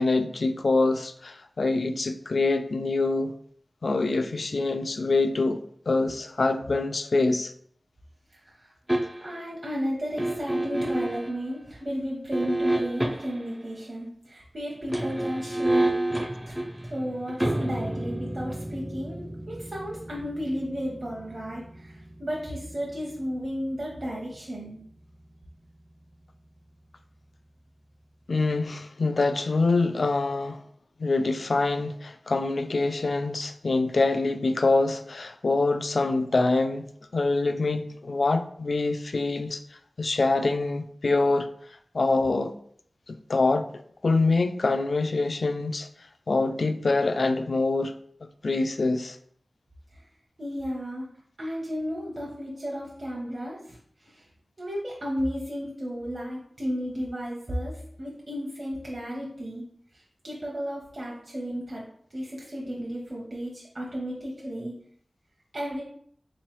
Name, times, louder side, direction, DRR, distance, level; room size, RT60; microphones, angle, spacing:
voice 1, 0.0-3.3 3.8-5.6 5.9-7.5 28.3-30.6 31.0-39.6 40.0-41.5 41.9-42.5 43.1-43.7 44.0-45.9 46.3-47.9 48.4-49.2, left 3 dB, 70° left, 0.3 m, -25 dB
voice 2, 8.3-8.7 9.2-15.9 16.5-16.6 16.8-24.8 49.9-50.1 50.4-51.1 51.4-54.3 54.6-59.6 59.9-61.8 62.1-64.7 65.5-65.8, equal, 55° right, 0.8 m, -33 dB
sound 1, 8.9-9.5 10.2-11.3 12.3-13.5 14.8-25.7 26.0-26.1, right 1 dB, 15° right, 0.4 m, -31 dB
3.6 x 3.0 x 3.0 m
wide cardioid pair, 50°, 0 cm